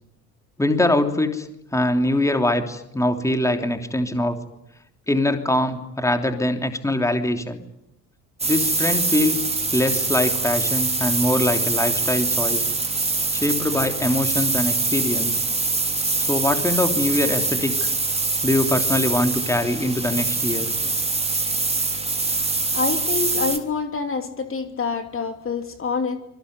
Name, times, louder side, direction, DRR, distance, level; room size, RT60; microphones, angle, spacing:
voice 1, 0.6-4.4 5.1-7.6 8.5-12.7 13.3-15.4 16.3-17.9 18.4-20.7, left 1 dB, 5° left, 6 dB, 3.1 m, -23 dB
sound 1, 8.4-23.6, right 3 dB, 15° right, 3.6 m, -24 dB
voice 2, 22.7-26.2, left 5 dB, 30° left, 7 dB, 3.0 m, -26 dB
26.5 x 23.0 x 9.6 m, 0.83 s
figure-of-eight pair, 60°, 44 cm